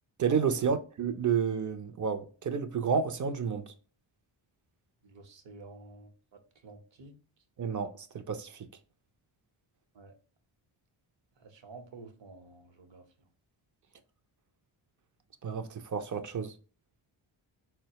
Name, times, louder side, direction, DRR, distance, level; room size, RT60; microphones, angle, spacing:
voice 1, 0.2-3.7 7.6-8.7 15.4-16.5, right 6 dB, 40° right, 0.5 m, -30 dB
voice 2, 5.0-6.1 6.6-7.2 9.9-10.1 11.4-13.1, right 3 dB, 65° right, 0.9 m, -50 dB
4.1 x 2.2 x 2.8 m
cardioid pair, 85°, 49 cm